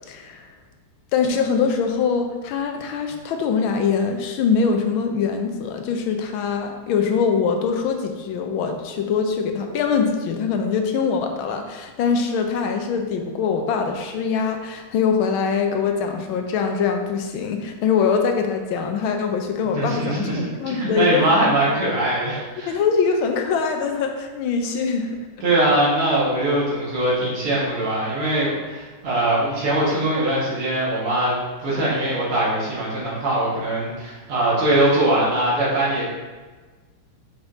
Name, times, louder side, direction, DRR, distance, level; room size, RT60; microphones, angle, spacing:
voice 1, 0.1-0.5 1.1-21.8 22.7-25.1, left 6 dB, 75° left, 4 dB, 1.4 m, -23 dB
voice 2, 19.7-22.7 25.4-36.1, right 1 dB, 80° right, -7 dB, 2.6 m, -22 dB
6.9 x 5.1 x 2.7 m, 1.3 s
omnidirectional pair, 2.4 m